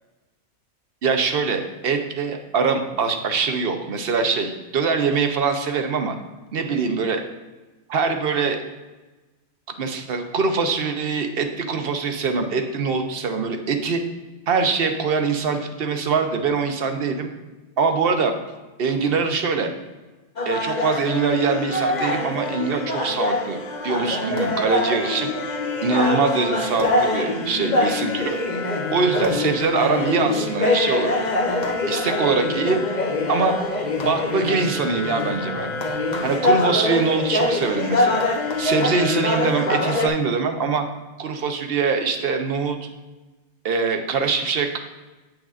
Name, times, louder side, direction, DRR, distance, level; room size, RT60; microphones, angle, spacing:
voice 1, 1.0-6.2 6.5-7.2 7.9-8.6 9.8-14.0 14.5-17.3 17.8-18.3 18.8-19.7 20.5-25.3 25.8-28.4 28.9-31.2 31.9-32.8 33.3-33.6 34.0-35.7 36.2-38.2 38.6-40.9 41.2-42.9 43.6-44.8, right 5 dB, 60° right, 6 dB, 0.9 m, -23 dB
sound 1, 20.4-40.1, left 2 dB, 45° left, 0.9 m, -24 dB
8.7 x 6.2 x 2.4 m, 1.2 s
omnidirectional pair, 1.2 m